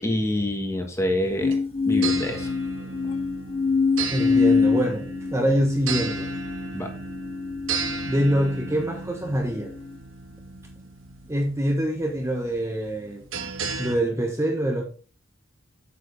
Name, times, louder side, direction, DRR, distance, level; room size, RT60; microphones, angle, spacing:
voice 1, 0.0-2.5 6.7-6.9, left 1 dB, 15° left, 1.4 m, -27 dB
sound 1, 1.2-14.0, right 4 dB, 75° right, 1.3 m, -35 dB
sound 2, 1.4-8.8 9.5-10.0, left 4 dB, 30° left, 0.4 m, -25 dB
voice 2, 4.1-6.3 8.1-9.7 11.3-13.2 13.8-14.8, right 1 dB, 15° right, 1.0 m, -25 dB
7.9 x 7.6 x 3.4 m
head